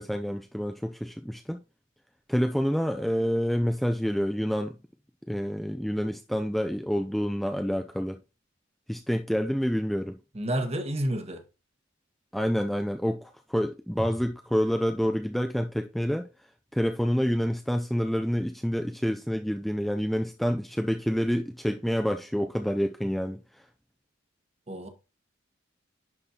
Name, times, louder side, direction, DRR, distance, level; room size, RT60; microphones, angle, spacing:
voice 1, 0.0-1.6 2.3-4.8 5.3-8.2 8.9-10.2 12.3-16.3 16.7-23.7, equal, ahead, 0.3 m, -28 dB
voice 2, 10.3-11.4 24.7-24.9, right 1 dB, 30° right, 1.2 m, -30 dB
10.5 x 4.1 x 2.8 m
head